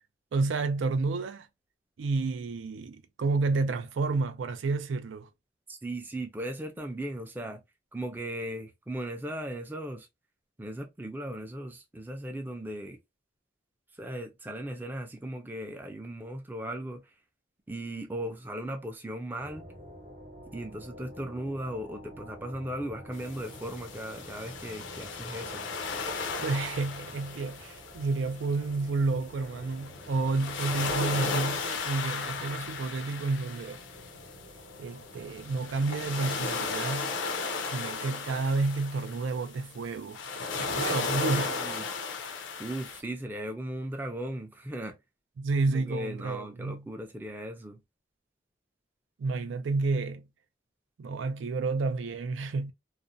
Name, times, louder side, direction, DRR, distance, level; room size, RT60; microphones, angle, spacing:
voice 1, 0.3-1.5 2.0-5.3 26.4-33.8 34.8-37.2 37.6-40.2 40.6-41.5 45.4-46.9 49.2-50.3 51.0-52.7, right 3 dB, 90° right, 0.4 m, -30 dB
voice 2, 5.7-7.6 7.9-10.1 10.6-13.0 14.0-17.0 17.7-19.6 20.5-25.7 41.1-41.9 42.6-45.0 45.7-47.8, right 1 dB, 10° right, 0.4 m, -37 dB
sound 1, 19.4-36.8, equal, 50° right, 0.8 m, -50 dB
sound 2, 23.1-43.0, left 4 dB, 85° left, 0.5 m, -35 dB
2.4 x 2.0 x 2.5 m
head